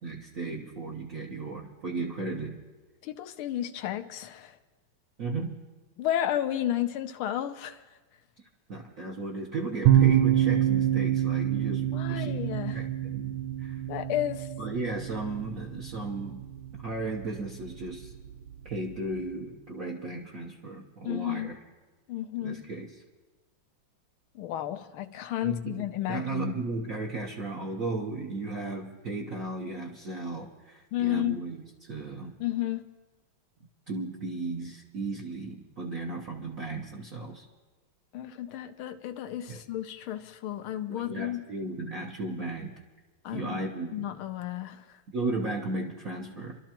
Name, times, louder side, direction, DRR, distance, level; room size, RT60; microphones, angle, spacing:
voice 1, 0.0-2.6 5.2-5.6 8.7-12.4 12.7-13.8 14.6-16.4 16.7-18.1 18.6-21.6 22.4-22.9 25.4-32.3 33.9-37.4 39.5-39.6 40.9-42.7 43.3-44.0 45.1-46.6, right 3 dB, 50° right, -2 dB, 1.2 m, -35 dB
voice 2, 3.0-4.6 6.0-7.8 11.9-12.8 13.9-14.5 21.0-21.5 22.1-22.6 24.3-26.5 30.9-31.3 32.4-32.8 38.1-41.4 43.2-43.6 43.9-44.8, left 12 dB, 85° left, 9 dB, 1.6 m, -32 dB
sound 1, 9.8-19.3, right 11 dB, 75° right, 1.4 m, -28 dB
27.5 x 12.5 x 2.9 m, 1.2 s
omnidirectional pair, 2.3 m